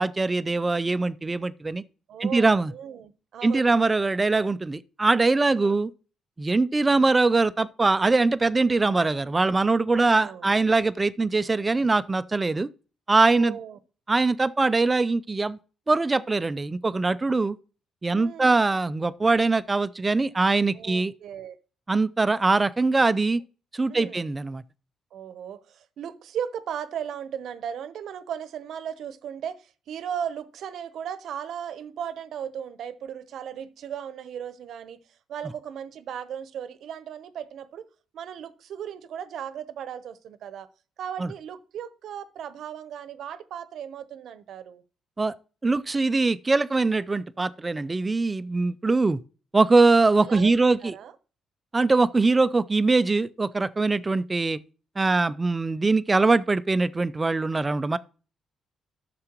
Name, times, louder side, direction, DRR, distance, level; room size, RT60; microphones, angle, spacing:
voice 1, 0.0-1.8 2.2-2.7 3.4-5.9 6.4-12.7 13.1-13.6 14.1-15.6 15.9-17.6 18.0-21.1 21.9-23.4 23.7-24.6 41.2-41.3 45.2-45.3 45.6-49.2 49.5-50.9 51.7-54.6 55.0-58.0, right 3 dB, 15° right, 0.4 m, -22 dB
voice 2, 2.1-3.8 5.5-5.8 9.9-10.5 13.2-13.8 18.1-18.6 20.7-21.6 23.9-24.3 25.1-35.0 35.3-37.9 38.1-40.7 41.0-44.8 50.2-50.5 50.8-51.1, right 8 dB, 65° right, 0.8 m, -36 dB
12.5 x 6.8 x 2.9 m
cardioid pair, 135°, 0 cm